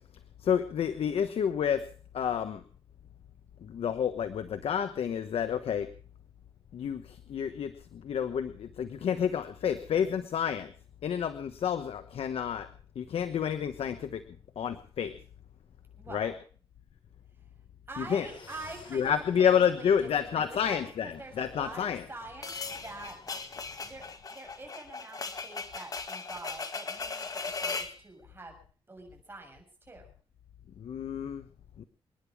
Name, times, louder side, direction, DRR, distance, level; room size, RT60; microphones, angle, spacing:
voice 1, 0.4-1.8 2.1-2.6 3.6-5.9 6.7-10.7 11.0-12.7 12.9-14.2 14.6-15.1 16.1-16.3 18.0-18.3 18.9-22.0 30.8-31.5 31.8-31.9, left 8 dB, 90° left, 10 dB, 1.1 m, -29 dB
voice 2, 16.0-16.4 17.9-23.3 23.8-28.6 28.9-30.1, right 2 dB, 25° right, 3 dB, 7.2 m, -46 dB
sound 1, 18.1-24.1, left 4 dB, 60° left, 4.7 m, -55 dB
sound 2, 22.4-28.0, left 4 dB, 40° left, 1.9 m, -38 dB
28.0 x 10.5 x 4.8 m, 0.42 s
wide cardioid pair, 105°, 10 cm